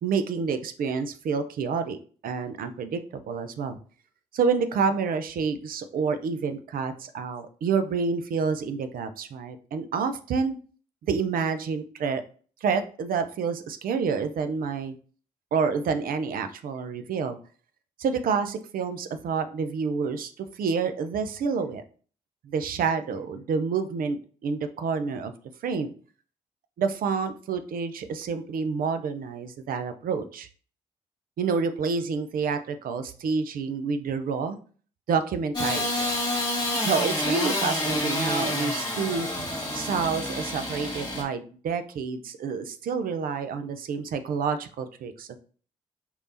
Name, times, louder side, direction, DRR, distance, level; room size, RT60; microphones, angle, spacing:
voice 1, 0.0-3.8 4.3-10.6 11.0-12.2 12.6-15.0 15.5-17.4 18.0-21.8 22.4-25.3 25.6-25.9 26.8-30.5 31.4-34.6 35.1-36.1 36.8-45.4, right 5 dB, 65° right, 9 dB, 0.6 m, -28 dB
Engine starting / Sawing, 35.5-41.2, left 1 dB, 25° left, 1.7 m, -28 dB
4.5 x 3.3 x 2.7 m, 0.41 s
hypercardioid pair, 40°, 16 cm